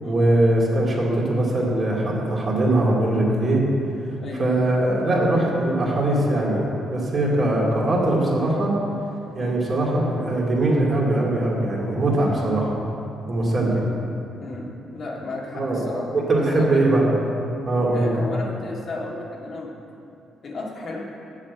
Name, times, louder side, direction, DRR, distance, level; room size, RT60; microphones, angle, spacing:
voice 1, 0.0-3.6 4.4-8.7 9.3-12.8 13.3-13.9 15.5-15.8 16.1-17.1 17.7-18.2, right 1 dB, 40° right, -4 dB, 2.6 m, -21 dB
voice 2, 14.4-16.8 17.9-19.7 20.4-21.0, left 2 dB, 55° left, -3 dB, 1.9 m, -33 dB
7.4 x 6.7 x 8.1 m, 2.7 s
cardioid pair, 90°, 0 cm